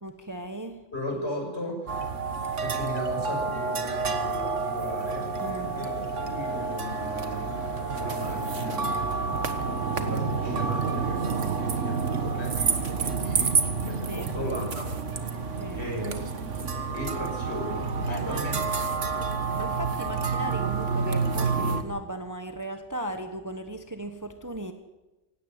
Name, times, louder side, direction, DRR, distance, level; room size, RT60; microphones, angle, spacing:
voice 1, 0.0-0.8 5.4-5.8 14.1-14.3 15.6-15.8 18.1-18.5 19.5-24.7, right 1 dB, 15° right, 7 dB, 1.2 m, -36 dB
voice 2, 0.9-2.1 2.6-5.3 5.7-7.5 8.0-13.5 13.8-14.9 15.2-18.7, equal, 55° left, 1 dB, 6.9 m, -37 dB
sound 1, 1.9-21.8, right 4 dB, 65° right, 1.8 m, -29 dB
18.0 x 16.5 x 9.2 m, 1.0 s
omnidirectional pair, 1.4 m